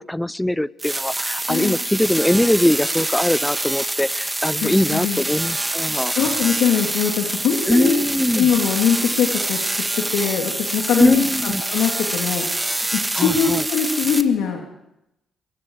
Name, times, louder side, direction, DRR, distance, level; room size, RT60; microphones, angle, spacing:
voice 1, 0.0-6.1 7.7-8.5 11.0-11.6 13.1-13.6, left 1 dB, 10° left, 19 dB, 0.7 m, -21 dB
sound 1, 0.8-14.2, right 1 dB, 15° right, 1.7 m, -25 dB
voice 2, 4.6-5.2 5.9-8.0 8.3-9.6 10.1-12.4 12.9-14.6, left 7 dB, 90° left, 1 dB, 3.0 m, -22 dB
23.0 x 23.0 x 4.9 m, 0.86 s
cardioid pair, 75°, 0 cm